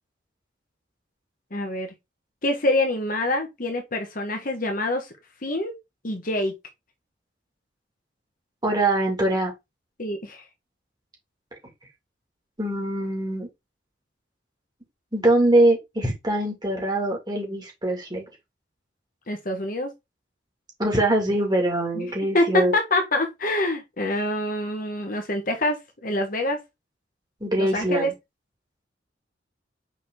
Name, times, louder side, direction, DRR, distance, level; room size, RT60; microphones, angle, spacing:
voice 1, 1.5-1.9 2.4-5.1 5.4-5.8 6.0-6.6 10.0-10.4 19.3-19.9 21.9-26.6 27.6-28.1, left 1 dB, 45° left, 1.4 m, -26 dB
voice 2, 8.6-9.5 12.6-13.5 15.1-18.3 20.8-22.7 27.4-28.1, right 1 dB, 20° right, 2.5 m, -23 dB
5.9 x 4.3 x 3.7 m
head